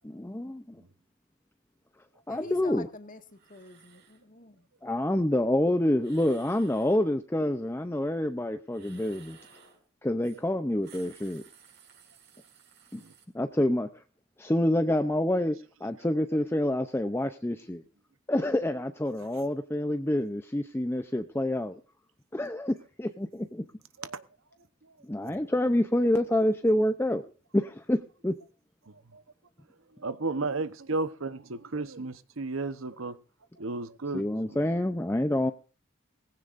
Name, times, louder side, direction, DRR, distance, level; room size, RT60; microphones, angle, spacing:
voice 1, 0.0-0.8 2.3-2.9 4.8-9.4 10.0-11.4 12.9-13.0 13.3-13.9 14.4-15.6 15.8-17.8 18.3-21.8 22.3-23.7 25.0-27.2 27.5-28.0 28.2-28.3 34.1-35.5, left 1 dB, 10° left, 0.6 m, -27 dB
voice 2, 2.3-3.2 3.5-4.6, left 2 dB, 40° left, 1.7 m, -45 dB
sound 1, 2.3-2.7 3.3-4.2 6.0-7.0 8.7-9.8 10.2-10.4 10.7-13.2, right 7 dB, 55° right, 5.3 m, -56 dB
voice 3, 28.9-29.2 30.0-33.2 33.6-34.7, right 3 dB, 85° right, 1.0 m, -34 dB
19.0 x 16.0 x 2.6 m
head